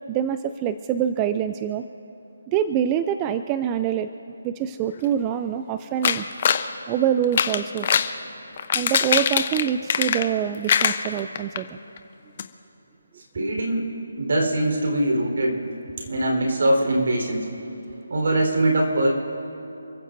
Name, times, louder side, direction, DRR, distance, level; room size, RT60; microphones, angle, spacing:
voice 1, 0.1-1.8 2.5-6.2 6.9-7.9 8.7-11.8, right 9 dB, 15° right, 10 dB, 0.3 m, -25 dB
sound 1, 6.0-6.7 7.2-8.1 8.6-10.4 10.7-11.6 12.0-12.1 12.4-12.5, left 7 dB, 35° left, 0.8 m, -22 dB
voice 2, 13.3-13.8 14.2-15.6 16.1-17.5 18.1-19.1, right 1 dB, 60° right, 1 dB, 4.2 m, -22 dB
29.5 x 15.0 x 2.7 m, 2.8 s
hypercardioid pair, 170°, 0 cm